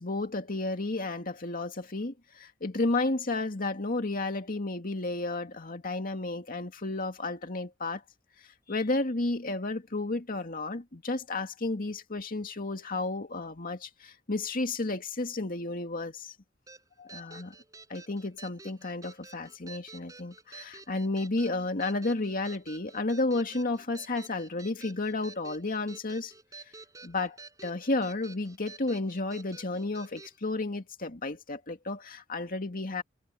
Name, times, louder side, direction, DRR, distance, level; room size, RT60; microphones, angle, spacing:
voice 1, 0.0-8.0 8.7-16.4 17.0-17.5 17.9-26.3 27.0-27.4 27.6-33.0, left 2 dB, 45° left, 2.2 m, -32 dB
sound 1, 16.7-30.4, right 3 dB, 20° right, 6.9 m, -50 dB
head